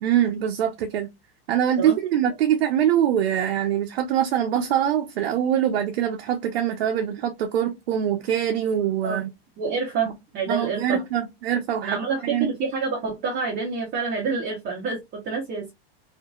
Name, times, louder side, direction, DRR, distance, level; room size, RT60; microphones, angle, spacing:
voice 1, 0.0-1.1 1.5-9.3 10.5-12.5, right 10 dB, 80° right, 0.6 m, -23 dB
voice 2, 9.6-11.0 11.8-15.7, right 4 dB, 30° right, 1.0 m, -28 dB
2.7 x 2.6 x 2.3 m
supercardioid pair, 130°, 30 cm